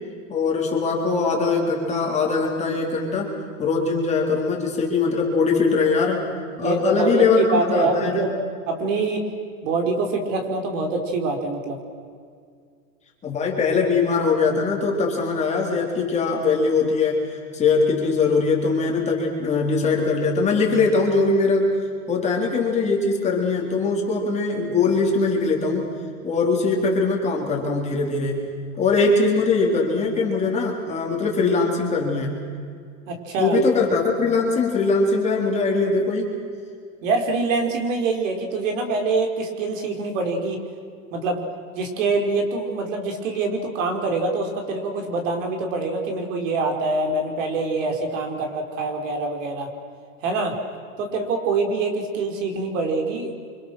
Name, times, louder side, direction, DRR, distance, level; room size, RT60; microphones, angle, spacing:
voice 1, 0.3-3.3 3.6-6.3 6.6-8.3 13.2-21.7 22.1-25.9 26.2-32.4 33.4-36.3, left 4 dB, 15° left, -1 dB, 3.9 m, -21 dB
voice 2, 6.6-8.3 8.7-9.2 9.6-11.8 33.1-33.6 37.0-40.6 41.1-41.4 41.8-49.7 50.2-50.5 51.0-53.3, right 3 dB, 75° right, 3 dB, 5.2 m, -25 dB
30.0 x 26.0 x 6.5 m, 2.2 s
supercardioid pair, 165°, 39 cm